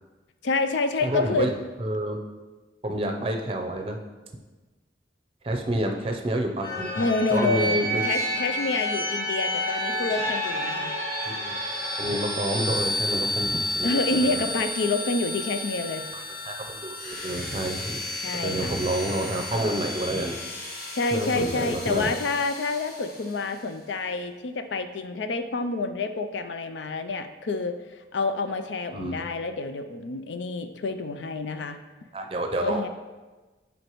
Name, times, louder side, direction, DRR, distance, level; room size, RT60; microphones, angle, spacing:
voice 1, 0.4-1.5 7.0-11.0 13.8-16.1 18.2-18.8 20.9-27.8 28.1-31.8 32.6-32.9, left 3 dB, 80° left, 8 dB, 0.5 m, -28 dB
voice 2, 1.0-1.5 1.8-2.2 2.8-4.0 5.4-8.1 11.3-11.6 12.0-14.4 16.5-18.0 18.3-20.4 21.1-22.1 28.9-29.2 32.1-32.8, right 1 dB, 30° right, 4 dB, 0.6 m, -29 dB
sound 1, 6.6-23.3, left 1 dB, 55° left, 1.4 m, -31 dB
7.9 x 5.2 x 3.0 m, 1.2 s
head